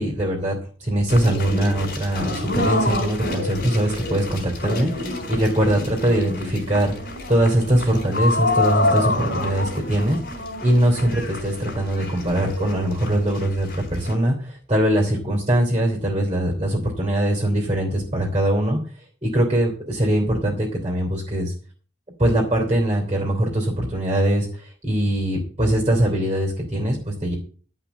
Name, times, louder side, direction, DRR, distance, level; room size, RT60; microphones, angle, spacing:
voice 1, 0.0-18.8 19.2-21.5 22.2-27.3, right 1 dB, 25° right, 0 dB, 3.3 m, -22 dB
sound 1, 1.1-14.1, left 2 dB, 50° left, 4.1 m, -27 dB
12.0 x 5.7 x 8.4 m, 0.41 s
head